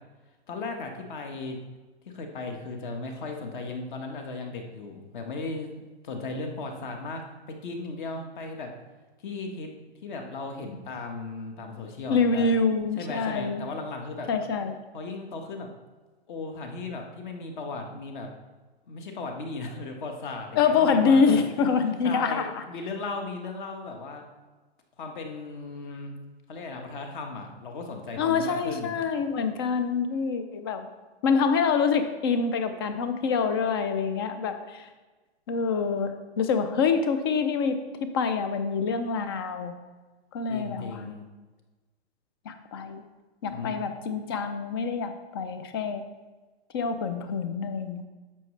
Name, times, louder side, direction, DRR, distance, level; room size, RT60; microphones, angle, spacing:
voice 1, 0.5-1.6 2.0-5.7 6.0-7.2 7.5-8.7 9.2-9.7 10.0-12.5 13.0-14.3 14.9-15.7 16.3-18.3 18.9-21.4 22.0-24.2 25.0-26.1 26.5-29.0 40.5-41.2 43.5-43.7, left 3 dB, 45° left, 3 dB, 1.5 m, -36 dB
voice 2, 12.1-13.6 14.3-14.8 20.6-22.6 28.2-30.9 31.2-34.9 35.5-39.7 40.3-41.1 42.5-43.0 43.4-46.1 46.7-48.0, left 5 dB, 25° left, 9 dB, 0.4 m, -26 dB
10.5 x 7.4 x 3.2 m, 1.2 s
hypercardioid pair, 155°, 33 cm